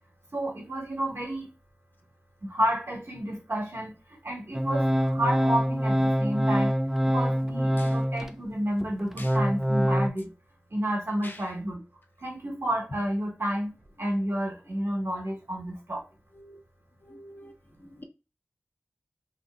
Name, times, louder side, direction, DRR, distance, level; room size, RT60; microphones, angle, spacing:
voice 1, 0.3-1.5 2.4-3.9 4.2-6.7 7.0-10.3 10.7-11.8 12.2-16.0, equal, 60° right, 1.0 m, -30 dB
Organ, 4.5-8.3 8.8-10.1, equal, 5° right, 0.3 m, -25 dB
voice 2, 17.1-17.5 18.0-18.1, left 1 dB, 45° left, 0.5 m, -44 dB
2.7 x 2.1 x 3.4 m
wide cardioid pair, 50°, 5 cm